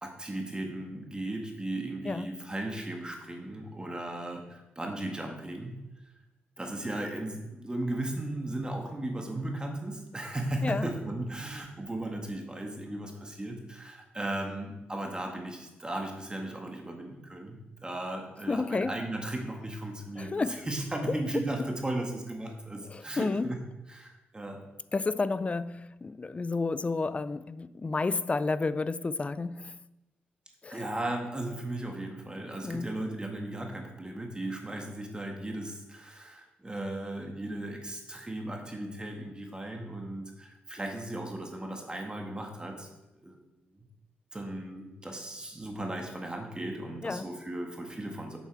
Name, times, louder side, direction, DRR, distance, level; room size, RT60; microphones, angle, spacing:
voice 1, 0.0-5.8 6.6-23.6 23.9-24.6 30.7-42.9 43.2-43.4 44.3-48.4, right 1 dB, 20° right, 1.6 m, -36 dB
voice 2, 10.6-10.9 18.5-19.0 20.2-20.7 22.8-23.6 24.9-29.8 30.6-30.9 32.6-33.0 47.0-47.4, left 3 dB, 30° left, 0.4 m, -31 dB
7.3 x 7.2 x 4.7 m
cardioid pair, 60°, 4 cm